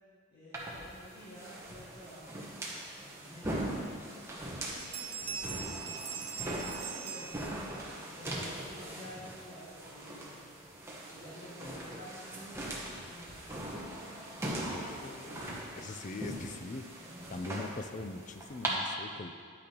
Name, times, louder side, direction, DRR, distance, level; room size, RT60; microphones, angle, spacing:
voice 1, 0.3-2.5 2.9-5.8 6.4-10.4 11.1-12.8 13.1-13.7 14.3-15.0, equal, 50° left, -11 dB, 2.0 m, -50 dB
sound 1, 0.5-18.7, right 1 dB, 15° right, 1.0 m, -41 dB
sound 2, 4.8-7.9, right 7 dB, 30° right, 0.5 m, -41 dB
voice 2, 14.7-15.5 15.8-16.9 17.3-19.4, left 2 dB, 35° left, 8 dB, 0.4 m, -42 dB
10.5 x 8.6 x 2.9 m, 2.1 s
head